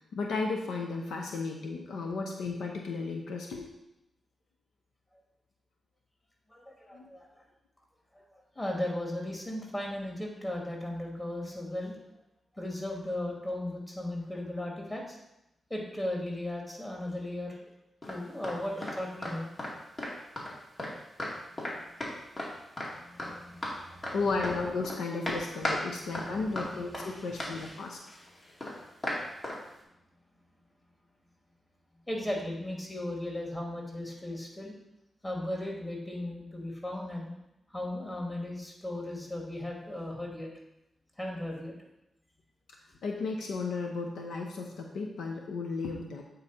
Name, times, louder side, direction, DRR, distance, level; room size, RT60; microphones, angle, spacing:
voice 1, 0.1-3.7 6.9-7.1 24.1-28.0 43.0-46.2, left 3 dB, 85° left, 1 dB, 0.8 m, -34 dB
voice 2, 6.5-7.4 8.3-12.0 12.5-15.2 15.7-17.7 18.1-19.5 21.3-21.9 22.8-24.1 25.8-26.6 27.0-27.1 32.1-34.7 35.2-37.3 37.7-40.5 41.2-41.7, left 1 dB, 20° left, -1 dB, 2.3 m, -37 dB
sound 1, 18.0-18.6 18.8-19.0 19.2-19.7 20.0-20.9 21.2-21.3 21.6-21.7 22.0-22.5 22.8-22.9 23.2-23.8 24.0-24.2 24.4-25.0 25.3-25.8 26.1-29.6, left 1 dB, 40° left, 2.3 m, -35 dB
8.3 x 4.0 x 4.2 m, 0.89 s
cardioid pair, 55°, 0 cm